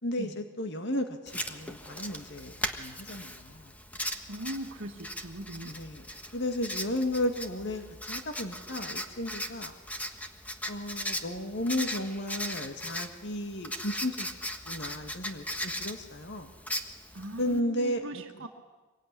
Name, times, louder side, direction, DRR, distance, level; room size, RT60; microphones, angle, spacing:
voice 1, 0.0-3.7 5.6-6.0 6.3-9.7 10.0-10.1 10.7-14.3 14.6-16.5 17.4-18.5, left 1 dB, 55° left, 6 dB, 2.1 m, -34 dB
Writing, 1.3-17.6, equal, 5° left, 1.4 m, -38 dB
voice 2, 4.3-5.8 17.1-18.5, equal, 70° right, 1 dB, 1.7 m, -39 dB
25.5 x 23.0 x 10.0 m, 1.2 s
head